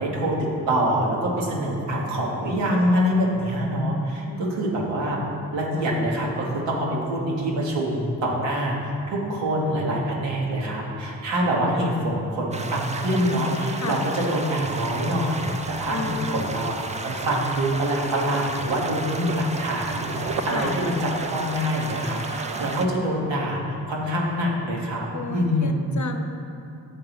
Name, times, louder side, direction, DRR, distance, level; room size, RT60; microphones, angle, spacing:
voice 1, 0.0-5.2 5.5-20.1 20.4-25.8, equal, 85° right, -3 dB, 1.3 m, -25 dB
voice 2, 4.2-4.6 13.7-14.1 15.9-16.6 20.5-20.8 25.1-26.3, left 3 dB, 40° left, 5 dB, 0.7 m, -33 dB
sound 1, 12.5-22.9, right 3 dB, 15° right, 0.5 m, -34 dB
sound 2, 15.3-23.5 23.7-24.0, right 4 dB, 60° right, 0.7 m, -38 dB
7.5 x 3.8 x 5.8 m, 2.8 s
supercardioid pair, 40°, 43 cm